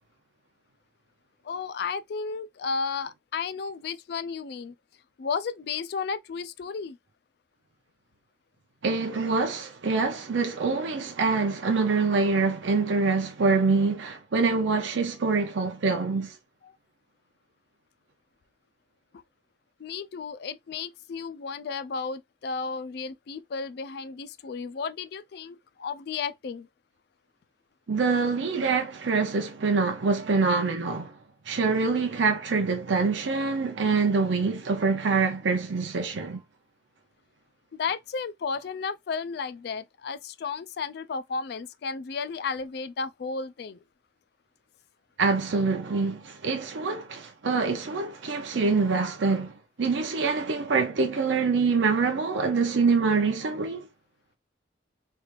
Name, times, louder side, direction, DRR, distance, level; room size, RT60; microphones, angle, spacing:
voice 1, 1.4-4.7 5.2-7.0 16.6-16.7 19.8-26.7 37.7-43.8, left 5 dB, 55° left, 0.3 m, -33 dB
voice 2, 8.8-16.4 27.9-31.2 31.5-36.4 45.2-53.9, right 4 dB, 75° right, 0.6 m, -25 dB
3.3 x 3.0 x 2.4 m
head